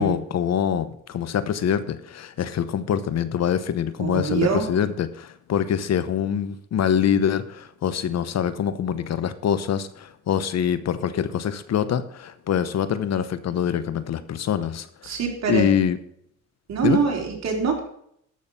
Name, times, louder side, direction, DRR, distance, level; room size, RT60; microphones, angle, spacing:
voice 1, 0.0-15.2 15.5-16.0 16.8-17.0, left 8 dB, 60° left, 13 dB, 1.0 m, -24 dB
voice 2, 4.0-4.7 15.0-15.7 16.7-17.8, right 6 dB, 60° right, 1 dB, 3.6 m, -24 dB
13.0 x 6.5 x 5.3 m, 0.69 s
cardioid pair, 90°, 30 cm